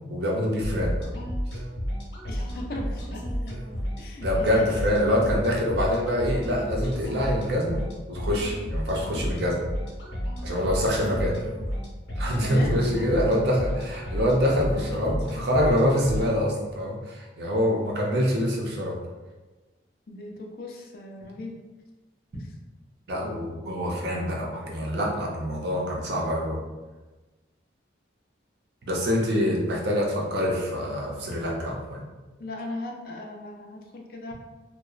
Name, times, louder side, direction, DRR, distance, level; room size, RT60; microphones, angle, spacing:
voice 1, 0.1-0.9 4.2-7.8 8.1-9.6 10.4-11.4 12.2-19.0 23.1-26.6 28.9-32.0, equal, 65° right, -1 dB, 0.5 m, -25 dB
sound 1, 0.6-16.3, equal, 85° left, 0.8 m, -32 dB
voice 2, 2.3-3.6 4.0-4.8 12.4-13.0 20.1-21.6 22.3-22.5 32.4-34.3, left 1 dB, 50° left, 1 dB, 0.3 m, -38 dB
2.8 x 2.0 x 2.4 m, 1.2 s
head